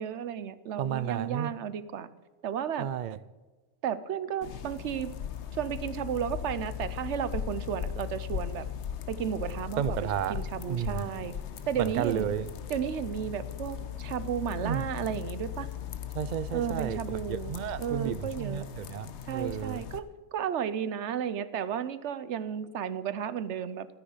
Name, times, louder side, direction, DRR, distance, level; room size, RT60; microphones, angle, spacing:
voice 1, 0.0-2.1 2.4-2.9 3.8-5.1 5.6-8.7 9.1-11.3 11.7-12.3 12.7-15.7 16.5-17.5 17.8-18.7 19.3-23.9, right 9 dB, 80° right, 1.0 m, -33 dB
voice 2, 0.8-1.5 2.8-3.2 9.8-10.4 10.7-11.2 11.8-12.5 14.6-14.8 16.1-19.8, right 9 dB, 55° right, 0.5 m, -32 dB
sound 1, 4.4-20.0, left 9 dB, 80° left, 1.1 m, -38 dB
13.0 x 9.9 x 5.7 m
omnidirectional pair, 1.2 m